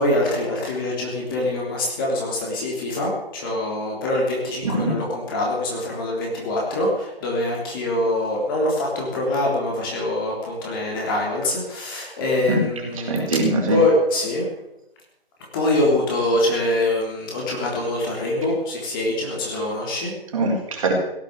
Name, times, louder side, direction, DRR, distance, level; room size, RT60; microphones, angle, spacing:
voice 1, 0.0-13.4 13.7-14.5 15.5-20.1, left 1 dB, 20° left, -2 dB, 3.5 m, -24 dB
voice 2, 4.6-4.9 12.5-12.6 13.1-13.8 20.3-20.9, right 2 dB, 35° right, -1 dB, 4.6 m, -22 dB
17.0 x 9.0 x 8.1 m, 0.86 s
figure-of-eight pair, 150°, 30 cm